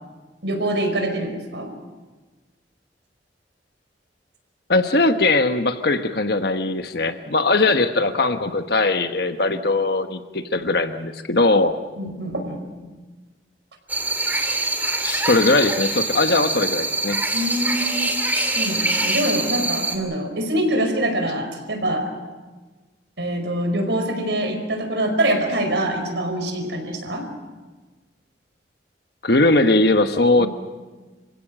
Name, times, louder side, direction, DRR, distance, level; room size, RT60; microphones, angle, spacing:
voice 1, 0.4-1.7 12.0-12.6 17.3-18.1 18.5-22.1 23.2-27.3 30.4-30.5, right 1 dB, 80° right, 5 dB, 5.0 m, -24 dB
voice 2, 4.7-11.8 15.0-17.2 29.2-30.5, left 2 dB, 60° left, 7 dB, 1.2 m, -20 dB
sound 1, 13.9-20.0, right 2 dB, 10° right, 2.7 m, -24 dB
27.0 x 16.5 x 7.7 m, 1.3 s
head